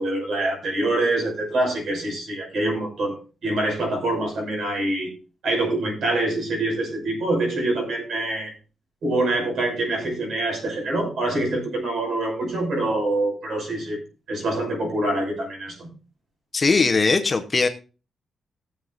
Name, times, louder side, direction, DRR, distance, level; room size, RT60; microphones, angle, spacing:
voice 1, 0.0-5.1 5.4-8.5 9.0-14.0 14.3-15.9, right 2 dB, 65° right, 1 dB, 5.5 m, -25 dB
voice 2, 16.5-17.7, left 4 dB, 25° left, 8 dB, 0.8 m, -19 dB
19.5 x 7.2 x 2.5 m, 0.33 s
wide cardioid pair, 175°, 0 cm